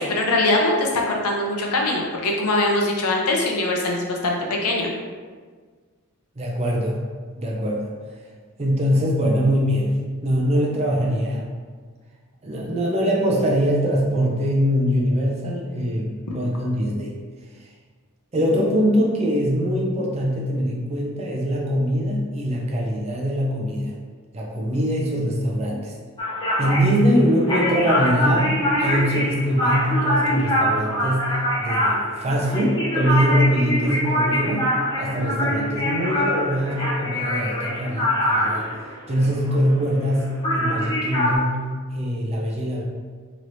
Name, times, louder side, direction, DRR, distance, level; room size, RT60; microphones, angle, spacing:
voice 1, 0.0-4.9, left 2 dB, 90° left, 0 dB, 0.6 m, -22 dB
voice 2, 6.4-7.9 8.6-9.9 10.2-11.5 12.4-17.1 18.3-23.9 24.3-25.9 26.6-28.5 28.8-31.3 31.6-34.7 35.0-38.6 39.1-41.7 41.9-42.8, equal, 30° right, -2 dB, 0.5 m, -22 dB
sound 1, 26.2-40.2 40.4-41.4, equal, 20° left, 0.6 m, -24 dB
3.2 x 3.0 x 2.6 m, 1.5 s
head